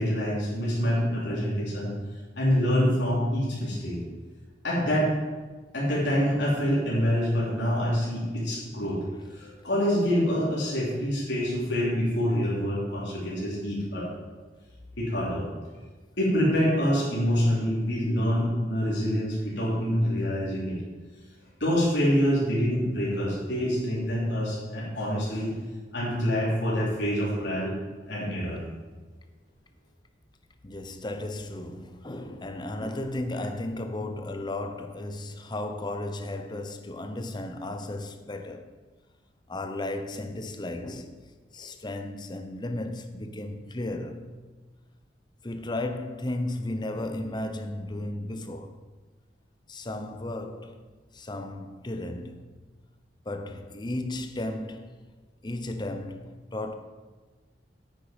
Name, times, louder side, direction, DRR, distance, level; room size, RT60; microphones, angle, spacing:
voice 1, 0.0-1.9 2.4-4.0 4.6-5.1 5.7-9.0 9.3-14.1 15.0-15.4 16.2-20.8 21.6-25.5 25.9-27.7 28.1-28.6, equal, 75° left, 3.3 m, -26 dB
voice 2, 30.6-38.7 39.5-41.2 41.5-44.3 45.4-48.8 49.7-50.8 51.1-52.4 53.3-54.9 55.4-56.7, left 1 dB, 25° left, 0.7 m, -34 dB
9.3 x 8.7 x 5.2 m
head